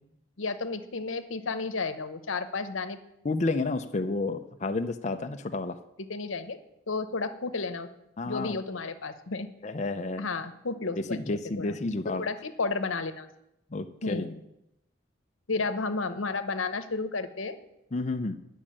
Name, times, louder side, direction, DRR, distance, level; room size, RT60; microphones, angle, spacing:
voice 1, 0.4-3.0 6.1-6.6 6.9-7.9 8.3-9.5 10.2-11.8 12.2-13.3 14.0-14.3 15.5-17.6, left 3 dB, 90° left, 10 dB, 0.9 m, -32 dB
voice 2, 3.2-5.8 8.2-8.6 9.6-10.2 11.0-12.2 13.7-14.3 17.9-18.4, left 3 dB, 35° left, 7 dB, 0.6 m, -30 dB
10.5 x 6.3 x 8.7 m, 0.85 s
head